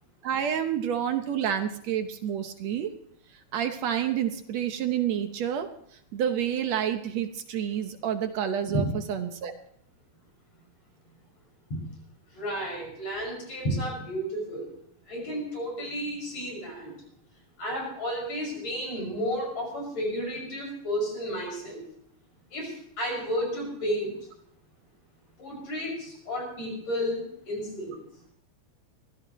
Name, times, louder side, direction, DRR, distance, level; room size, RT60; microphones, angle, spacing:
voice 1, 0.2-2.9 3.5-5.7 6.1-9.5, right 9 dB, 70° right, 7 dB, 2.1 m, -29 dB
voice 2, 12.3-14.7 15.1-16.9 17.6-21.8 22.5-24.2 25.4-28.0, equal, 65° left, -1 dB, 7.3 m, -32 dB
24.0 x 15.0 x 3.1 m, 0.68 s
omnidirectional pair, 3.3 m